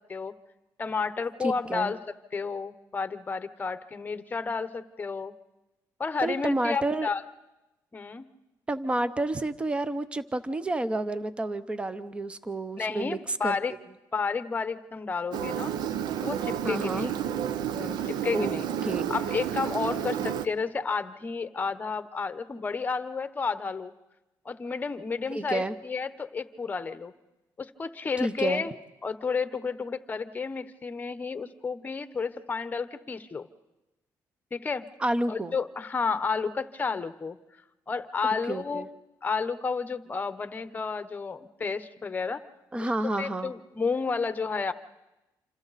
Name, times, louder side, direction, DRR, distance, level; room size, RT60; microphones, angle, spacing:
voice 1, 0.8-2.0 2.3-5.3 6.0-7.2 7.9-8.3 12.8-13.7 14.1-15.7 16.2-17.1 17.8-18.7 19.1-23.9 24.4-27.1 27.6-28.7 29.0-33.5 34.5-34.9 35.3-37.4 37.9-38.9 39.2-42.4 42.8-42.9 43.2-44.7, left 5 dB, 25° left, 12 dB, 1.0 m, -31 dB
voice 2, 1.4-1.9 6.2-7.1 8.7-13.6 16.6-17.1 18.3-18.5 18.8-19.2 25.3-25.7 28.2-28.6 35.0-35.5 38.5-38.9 42.7-43.5, right 2 dB, 15° right, 13 dB, 0.8 m, -30 dB
Engine, 15.3-20.5, right 9 dB, 75° right, 0.8 m, -31 dB
27.0 x 27.0 x 4.1 m, 0.98 s
cardioid pair, 130°, 7 cm